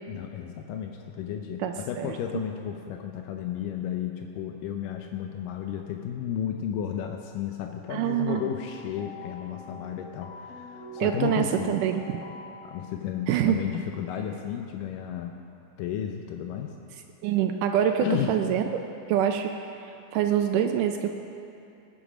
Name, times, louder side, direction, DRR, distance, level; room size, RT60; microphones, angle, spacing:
voice 1, 0.1-11.8 12.6-15.4 15.8-16.8 17.9-18.4, left 9 dB, 85° left, 4 dB, 2.3 m, -33 dB
voice 2, 1.6-2.2 7.9-8.5 11.0-12.2 13.3-13.6 17.2-18.8 19.1-21.1, right 10 dB, 80° right, 6 dB, 2.1 m, -26 dB
sound 1, 8.3-12.9, left 2 dB, 55° left, 2.0 m, -44 dB
18.5 x 10.5 x 5.1 m, 2.7 s
omnidirectional pair, 3.8 m